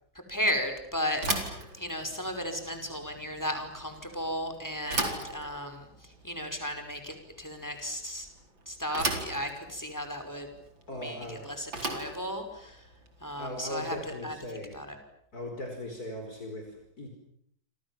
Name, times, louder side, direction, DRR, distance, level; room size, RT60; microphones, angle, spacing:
voice 1, 0.3-5.9 6.2-8.3 8.7-10.5 11.0-12.8 13.2-14.4 14.7-15.0, equal, 10° left, 6 dB, 5.4 m, -35 dB
Bicycle / Thump thud, 1.1-14.3, right 3 dB, 90° right, 5.1 m, -38 dB
voice 2, 10.9-11.5 13.4-14.8 15.3-17.1, left 1 dB, 50° left, 3 dB, 5.1 m, -39 dB
29.0 x 27.0 x 7.4 m, 0.66 s
omnidirectional pair, 2.0 m